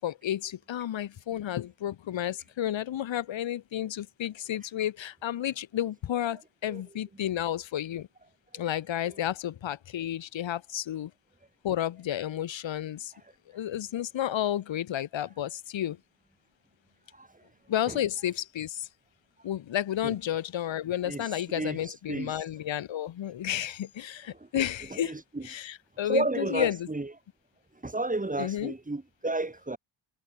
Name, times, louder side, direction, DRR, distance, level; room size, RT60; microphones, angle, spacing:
voice 1, 0.0-8.1 8.5-11.1 11.6-13.1 13.5-16.0 17.7-18.9 19.4-25.1 25.4-26.9 28.4-28.7, left 11 dB, 85° left, 6.7 m, -31 dB
voice 2, 22.1-22.4 24.3-24.5 24.9-25.5 26.1-27.1 27.8-29.8, right 2 dB, 20° right, 5.3 m, -32 dB
cardioid pair, 85°, 44 cm